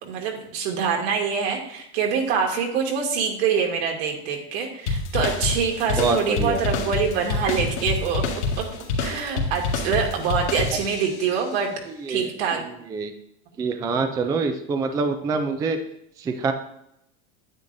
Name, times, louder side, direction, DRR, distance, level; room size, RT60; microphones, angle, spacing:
voice 1, 0.0-8.2 8.5-8.7 9.0-11.7 12.1-12.6, right 6 dB, 65° right, 2 dB, 2.2 m, -25 dB
sound 1, 4.9-11.2, left 3 dB, 80° left, 2.0 m, -27 dB
voice 2, 6.0-6.6 12.0-12.3 12.9-13.1 13.6-15.8 16.2-16.5, right 4 dB, 10° right, 7 dB, 0.3 m, -25 dB
9.8 x 8.6 x 2.6 m, 0.78 s
supercardioid pair, 145°, 33 cm